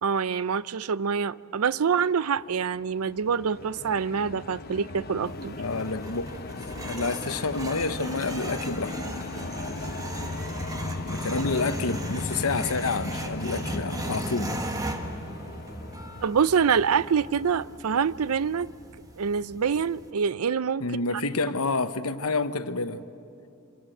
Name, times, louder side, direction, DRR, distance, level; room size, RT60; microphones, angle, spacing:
voice 1, 0.0-5.5 16.2-18.7 19.2-20.8, right 6 dB, 80° right, 0.5 m, -25 dB
sound 1, 2.7-17.2, left 2 dB, 45° left, 0.9 m, -36 dB
sound 2, 5.3-20.1, right 1 dB, 15° right, 1.5 m, -38 dB
voice 2, 5.6-6.5 6.8-9.0 11.1-15.0 20.8-23.0, left 3 dB, 80° left, 1.0 m, -29 dB
27.0 x 25.0 x 7.8 m
head